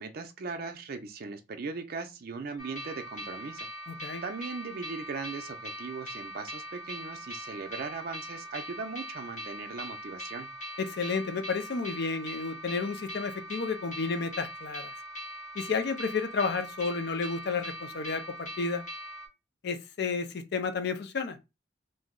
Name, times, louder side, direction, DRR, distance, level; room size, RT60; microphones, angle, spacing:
voice 1, 0.0-3.7 4.2-10.5, right 4 dB, 55° right, 0.4 m, -39 dB
sound 1, 2.6-19.3, equal, 40° left, 0.9 m, -41 dB
voice 2, 3.9-4.2 10.8-14.9 15.5-18.8 19.6-21.4, left 4 dB, 60° left, 0.5 m, -31 dB
2.6 x 2.0 x 3.6 m
head